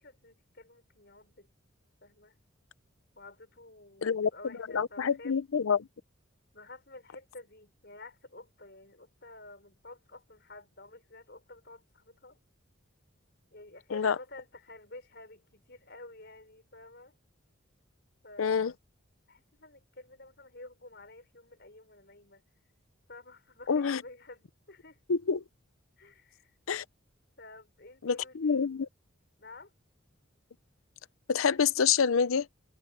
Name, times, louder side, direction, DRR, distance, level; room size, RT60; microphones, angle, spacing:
voice 1, 0.0-1.5 2.0-2.4 3.2-5.4 6.5-12.4 13.5-17.1 18.2-18.8 19.3-22.4 23.1-25.0 26.0-26.5 27.4-28.8 29.4-29.7, left 2 dB, 55° left, 5.6 m, -51 dB
voice 2, 4.7-5.9 13.9-14.2 18.4-18.7 23.7-24.0 25.1-25.4 26.7-26.8 28.0-28.9 31.3-32.5, left 6 dB, 85° left, 0.6 m, -27 dB
head